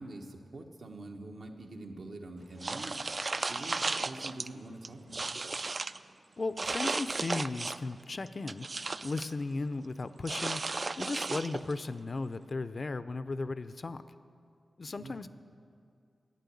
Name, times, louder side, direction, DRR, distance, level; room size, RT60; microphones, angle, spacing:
voice 1, 0.0-3.0 3.5-5.4 15.0-15.2, right 2 dB, 70° right, 2 dB, 1.2 m, -45 dB
sound 1, 2.6-4.5 4.8-6.0 6.6-7.9 8.3-9.3 10.2-11.8, right 3 dB, 45° right, 0.3 m, -34 dB
voice 2, 6.4-10.6 11.0-14.0 14.8-15.3, left 3 dB, 50° left, 13 dB, 0.5 m, -36 dB
11.5 x 8.9 x 8.4 m, 2.3 s
wide cardioid pair, 70°, 0 cm